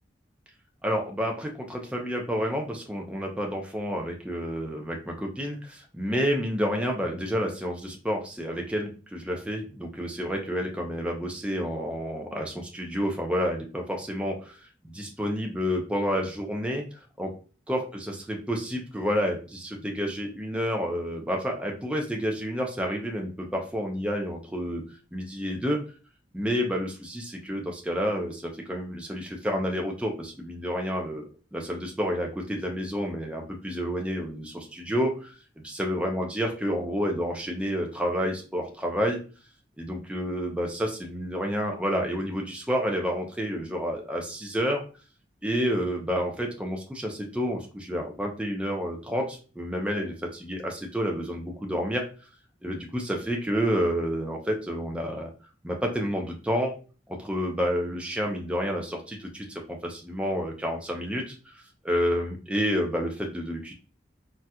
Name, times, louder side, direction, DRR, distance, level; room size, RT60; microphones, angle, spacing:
voice 1, 0.8-14.6 14.8-16.8 17.2-17.3 17.7-24.8 25.1-25.8 26.3-35.3 35.6-39.2 39.8-44.8 45.4-52.0 52.6-55.3 55.6-56.7 57.1-63.7, equal, 5° right, 1 dB, 0.4 m, -29 dB
4.1 x 2.3 x 2.2 m, 0.36 s
head